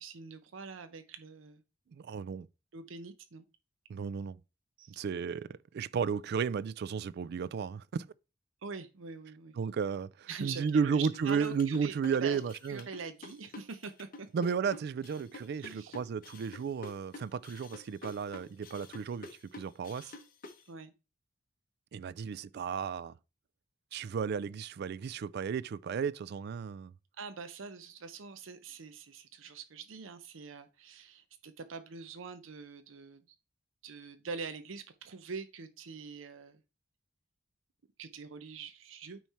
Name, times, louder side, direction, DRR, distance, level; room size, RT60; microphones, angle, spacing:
voice 1, 0.0-1.6 2.7-3.5 4.8-5.0 8.6-9.5 10.3-11.9 12.2-12.4 12.7-14.3 15.6-16.0 20.7-20.9 27.2-33.2 33.8-36.6 38.0-39.2, right 5 dB, 85° right, 0.7 m, -44 dB
voice 2, 1.9-2.5 3.9-4.4 5.0-8.1 9.6-12.9 14.3-20.1 21.9-23.1 23.9-26.9, right 6 dB, 55° right, 0.3 m, -34 dB
sound 1, 11.1-20.6, left 3 dB, 45° left, 0.9 m, -48 dB
9.0 x 3.2 x 4.2 m
head